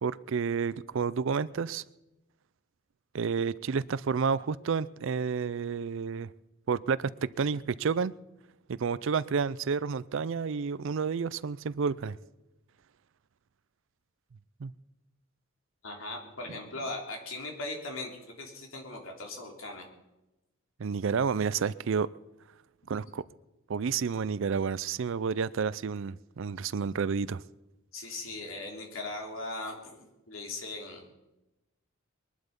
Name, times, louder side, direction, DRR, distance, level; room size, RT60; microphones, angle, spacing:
voice 1, 0.0-1.8 3.1-6.3 6.7-7.1 7.4-8.1 8.7-12.2 14.6-14.7 20.8-22.1 22.9-23.2 23.7-27.4, right 5 dB, 60° right, 0.4 m, -30 dB
voice 2, 15.8-19.9 27.9-31.0, left 2 dB, 65° left, 3.2 m, -39 dB
21.5 x 11.5 x 5.3 m
head